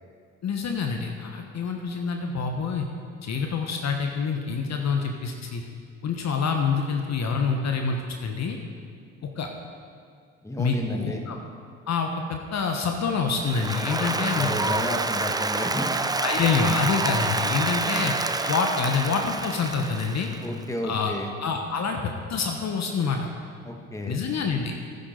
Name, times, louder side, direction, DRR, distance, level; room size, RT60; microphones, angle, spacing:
voice 1, 0.4-2.9 3.2-5.6 6.0-8.6 9.2-9.5 10.6-11.4 11.9-14.9 16.2-18.1 18.5-20.3 20.8-21.1 21.4-23.3 24.1-24.7, left 5 dB, 45° left, 3 dB, 1.3 m, -27 dB
voice 2, 10.4-11.2 14.3-15.9 20.4-21.3 23.7-24.2, left 1 dB, 10° left, 2 dB, 1.7 m, -32 dB
Applause, 13.4-20.6, right 3 dB, 10° right, 0.6 m, -28 dB
14.0 x 10.5 x 4.0 m, 2.2 s
hypercardioid pair, 55°, 39 cm